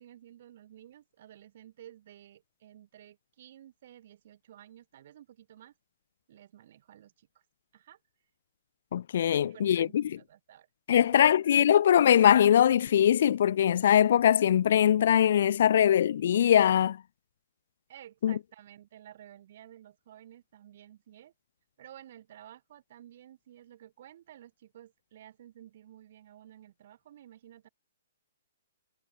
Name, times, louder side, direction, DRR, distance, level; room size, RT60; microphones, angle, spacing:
voice 1, 0.0-5.7 6.3-7.4 7.7-8.0 9.2-11.3 17.9-21.3 21.8-27.7, right 11 dB, 40° right, 7.6 m, -53 dB
voice 2, 8.9-10.0 10.9-17.0 18.2-18.4, left 10 dB, 50° left, 0.5 m, -22 dB
hypercardioid pair, 175°, 0 cm